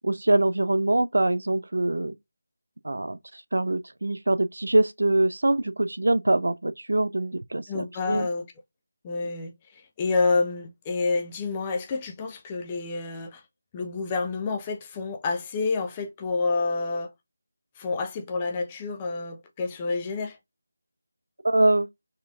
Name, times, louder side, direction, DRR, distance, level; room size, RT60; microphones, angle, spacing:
voice 1, 0.0-2.1 2.8-8.3 21.4-21.9, right 2 dB, 70° right, 0.4 m, -24 dB
voice 2, 7.7-8.5 9.0-13.4 13.7-17.1 17.8-20.4, left 3 dB, 20° left, 0.5 m, -28 dB
4.1 x 2.6 x 2.3 m
figure-of-eight pair, 160°, 0 cm